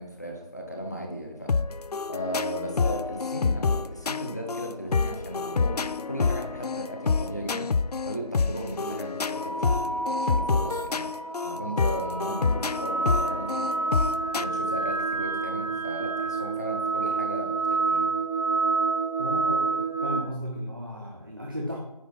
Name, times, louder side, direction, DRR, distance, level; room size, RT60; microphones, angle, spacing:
voice 1, 0.0-1.6 2.1-11.0 11.4-14.0 14.4-18.1, equal, 25° left, 1 dB, 0.8 m, -36 dB
sound 1, 1.5-14.4, left 5 dB, 75° left, 0.4 m, -28 dB
sound 2, 9.3-20.2, right 3 dB, 70° right, 2.1 m, -28 dB
voice 2, 19.2-21.8, equal, 35° right, -1 dB, 0.7 m, -34 dB
9.2 x 3.7 x 4.4 m, 0.93 s
figure-of-eight pair, 180°, 20 cm